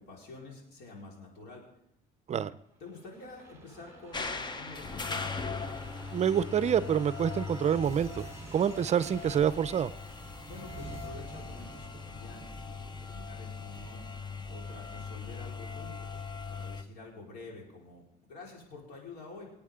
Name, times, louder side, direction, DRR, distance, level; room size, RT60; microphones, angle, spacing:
voice 1, 0.0-1.6 2.8-5.4 10.4-19.5, left 3 dB, 75° left, -1 dB, 4.5 m, -49 dB
sound 1, 2.8-16.2 16.6-16.7, right 3 dB, 15° right, 3.7 m, -49 dB
sound 2, 4.1-16.8, left 4 dB, 25° left, 0.9 m, -40 dB
voice 2, 6.1-8.2 8.5-9.9, right 8 dB, 40° right, 15 dB, 0.6 m, -27 dB
25.0 x 8.6 x 3.7 m, 0.74 s
cardioid pair, 110°, 17 cm